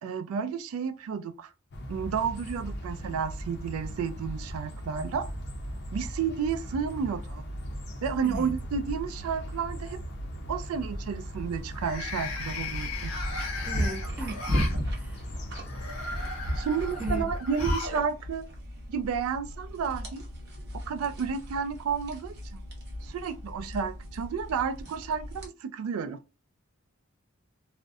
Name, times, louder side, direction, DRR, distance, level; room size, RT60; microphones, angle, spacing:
voice 1, 0.0-1.5 1.9-5.3 5.9-7.4 8.0-10.0 10.5-13.1 16.6-18.5 18.9-20.2 20.9-22.3 23.0-26.2, right 6 dB, 80° right, 0.3 m, -31 dB
sound 1, 1.7-17.2, equal, 55° left, 0.5 m, -38 dB
sound 2, 8.2-8.8 9.2-9.6 11.7-14.8 15.6-18.0 18.3-18.4 19.5-19.6, left 3 dB, 85° left, 0.7 m, -37 dB
sound 3, 11.4-25.5, equal, 50° right, 0.7 m, -36 dB
voice 2, 13.7-14.6 14.9-15.2 17.0-17.3, right 1 dB, 5° right, 0.4 m, -37 dB
2.4 x 2.0 x 2.5 m
head